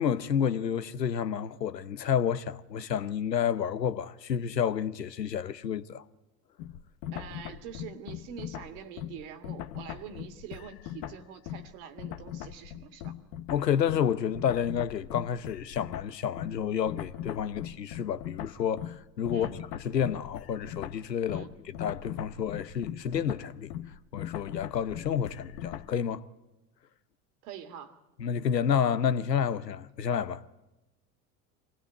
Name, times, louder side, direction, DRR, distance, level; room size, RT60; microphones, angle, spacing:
voice 1, 0.0-6.0 13.5-19.5 19.8-21.4 21.8-23.7 24.1-26.2 28.2-30.4, left 8 dB, 90° left, 0.9 m, -30 dB
sound 1, 6.6-11.7 12.0-26.0, left 11 dB, 60° left, 1.1 m, -40 dB
voice 2, 7.1-13.1 19.3-19.6 21.3-21.5 27.4-28.0, right 7 dB, 60° right, 2.2 m, -45 dB
24.5 x 16.5 x 9.4 m
hypercardioid pair, 80°, 48 cm